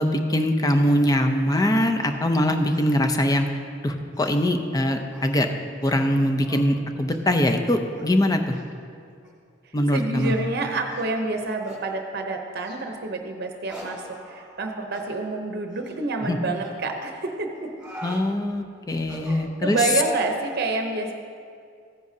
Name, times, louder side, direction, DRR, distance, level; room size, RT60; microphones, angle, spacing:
voice 1, 0.0-3.5 3.8-5.5 5.8-8.6 9.7-10.3 16.2-16.4 18.0-19.8, left 1 dB, 20° left, 5 dB, 0.6 m, -22 dB
sound 1, 0.9-1.1 1.5-1.7 2.0-2.2 2.6-3.0 3.4-3.5 4.0-4.5 5.1-5.4 5.8-6.1 6.4-6.6 7.1-7.3 7.8-8.1 8.5-8.6 9.2-9.3 10.1-10.4 10.9-11.1 11.6-11.8 12.6-12.9 13.7-14.6 14.9-15.1 15.7-16.0 16.5-16.7 17.5-18.2 19.0-19.9, right 1 dB, 5° right, 2.1 m, -43 dB
voice 2, 9.9-17.7 19.3-21.1, right 3 dB, 55° right, 3 dB, 0.7 m, -28 dB
15.0 x 10.0 x 2.7 m, 2.3 s
head